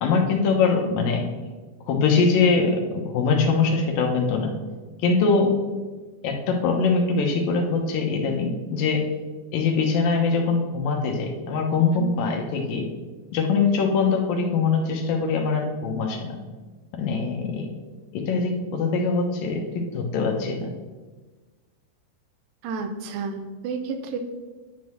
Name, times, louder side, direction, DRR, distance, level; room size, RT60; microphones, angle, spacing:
voice 1, 0.0-1.2 1.9-4.5 5.0-5.5 6.2-9.0 9.5-12.8 13.3-16.4 16.9-17.7 18.1-20.7, left 4 dB, 75° left, 1 dB, 2.3 m, -23 dB
voice 2, 22.6-24.2, right 4 dB, 85° right, 6 dB, 2.9 m, -31 dB
10.5 x 3.9 x 7.5 m, 1.3 s
omnidirectional pair, 4.9 m